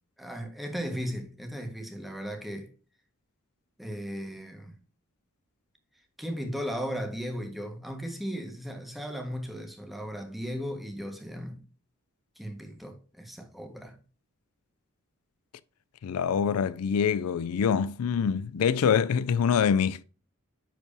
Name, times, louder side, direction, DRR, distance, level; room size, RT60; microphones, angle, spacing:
voice 1, 0.2-2.7 3.8-4.8 6.2-11.7 12.4-14.0, equal, ahead, 1.4 m, -36 dB
voice 2, 16.0-20.0, left 7 dB, 90° left, 0.4 m, -25 dB
10.0 x 4.7 x 2.7 m
head